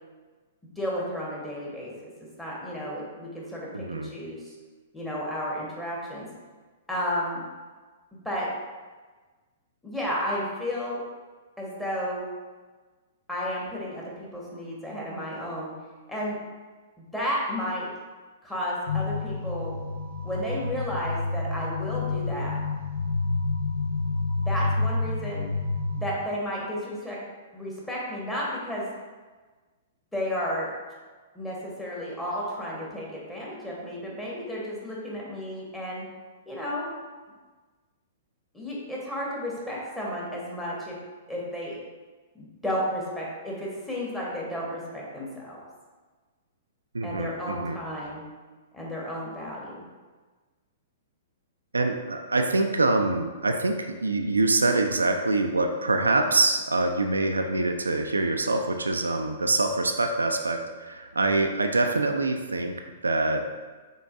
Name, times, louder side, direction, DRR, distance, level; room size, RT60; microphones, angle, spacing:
voice 1, 0.8-1.9 2.4-4.5 4.9-6.3 6.9-7.4 8.1-8.5 9.8-11.0 11.6-12.2 13.3-15.7 16.1-16.4 17.1-17.9 18.4-19.7 20.2-22.6 24.4-25.5 25.9-27.2 27.5-28.8 30.1-30.7 31.3-36.0 36.5-36.9 38.5-41.0 41.3-41.8 42.4-45.6 47.0-48.2 48.7-49.9, equal, 5° left, -5 dB, 1.3 m, -32 dB
voice 2, 3.7-4.1 46.9-47.8 51.7-63.5, right 2 dB, 80° right, 4 dB, 0.4 m, -25 dB
sound 1, 18.9-26.0, left 3 dB, 60° left, 0.7 m, -29 dB
5.3 x 3.9 x 2.5 m, 1.3 s
figure-of-eight pair, 110°, 0 cm